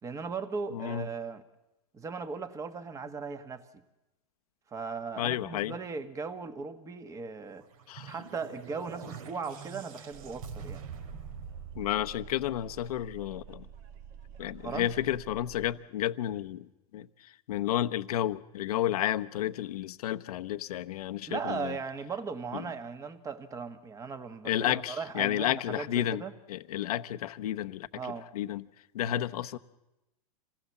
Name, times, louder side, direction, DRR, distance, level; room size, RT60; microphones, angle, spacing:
voice 1, 0.0-1.4 1.9-3.8 4.7-7.7 8.0-10.8 14.6-14.9 21.3-26.3 27.9-28.3, right 5 dB, 15° right, 1.4 m, -38 dB
voice 2, 0.7-1.1 5.2-5.7 7.9-8.1 11.7-13.7 14.4-21.8 24.4-26.2 26.5-27.9 28.3-28.6 28.9-29.6, left 12 dB, 75° left, 1.0 m, -31 dB
sound 1, 7.6-12.9, right 6 dB, 65° right, 2.4 m, -45 dB
sound 2, 10.1-15.7, right 8 dB, 45° right, 2.1 m, -49 dB
27.0 x 19.5 x 7.3 m
supercardioid pair, 145°, 20 cm